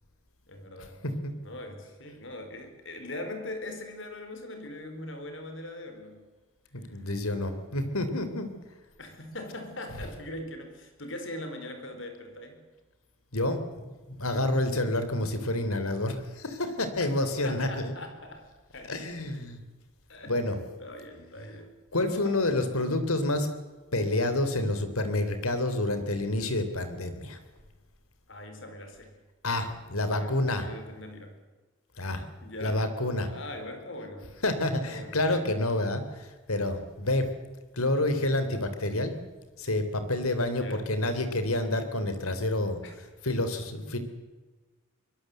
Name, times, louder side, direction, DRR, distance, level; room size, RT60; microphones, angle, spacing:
voice 1, 0.5-1.0 1.4-6.3 6.8-7.0 9.0-12.6 17.4-18.5 18.7-19.4 20.1-21.7 22.2-22.8 28.3-29.1 30.0-31.4 32.4-32.9 33.3-34.4 34.8-35.6 40.5-41.0 42.8-42.9, left 1 dB, 60° left, 6 dB, 4.4 m, -41 dB
voice 2, 6.7-8.5 13.3-17.9 18.9-19.6 20.3-20.6 21.9-23.5 23.9-27.4 29.4-30.7 32.0-32.3 32.6-33.3 34.4-37.3 37.7-39.2 39.6-42.8 43.2-44.0, left 1 dB, 85° left, 9 dB, 3.6 m, -28 dB
24.5 x 21.5 x 8.0 m, 1.2 s
head